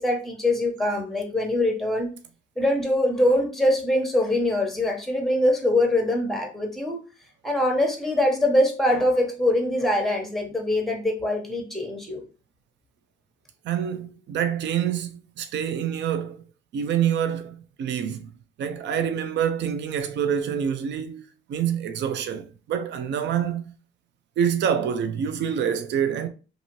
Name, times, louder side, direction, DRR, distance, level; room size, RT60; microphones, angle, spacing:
voice 1, 0.0-2.1 2.6-7.0 7.4-12.2, left 1 dB, ahead, 1.0 m, -23 dB
voice 2, 13.6-16.4 16.7-23.7 24.4-26.3, right 8 dB, 65° right, 0.5 m, -26 dB
2.7 x 2.6 x 2.9 m
cardioid pair, 90°, 20 cm